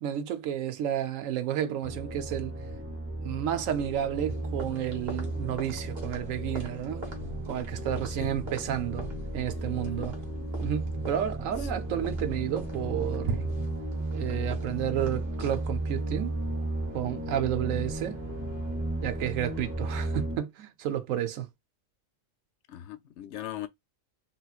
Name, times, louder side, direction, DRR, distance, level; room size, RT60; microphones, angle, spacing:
voice 1, 0.0-2.5 3.2-7.1 7.5-10.2 10.6-13.5 14.1-16.4 16.9-18.2 19.0-21.5, right 11 dB, 80° right, 1.1 m, -31 dB
sound 1, 1.8-20.4, right 2 dB, 15° right, 0.7 m, -34 dB
sound 2, 4.3-20.3, right 3 dB, 50° right, 1.3 m, -44 dB
voice 2, 22.7-23.7, left 12 dB, 65° left, 0.8 m, -39 dB
3.3 x 3.0 x 2.4 m
omnidirectional pair, 1.3 m